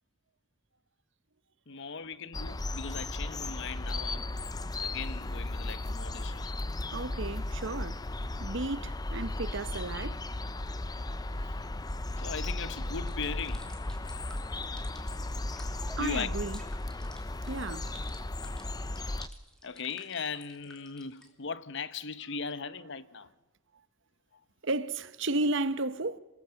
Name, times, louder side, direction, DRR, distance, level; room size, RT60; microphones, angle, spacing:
voice 1, 1.7-4.3 4.8-6.5 10.6-10.8 11.4-11.5 12.2-13.7 15.9-16.3 19.6-23.3, left 5 dB, 65° left, 0.9 m, -38 dB
sound 1, 2.3-19.3, left 2 dB, 20° left, 0.7 m, -35 dB
voice 2, 6.9-8.0 8.4-10.3 15.9-16.6 17.5-17.9 24.6-26.2, right 2 dB, 65° right, 1.0 m, -33 dB
sound 2, 12.8-21.3, equal, 5° left, 2.9 m, -54 dB
27.5 x 18.5 x 7.8 m
head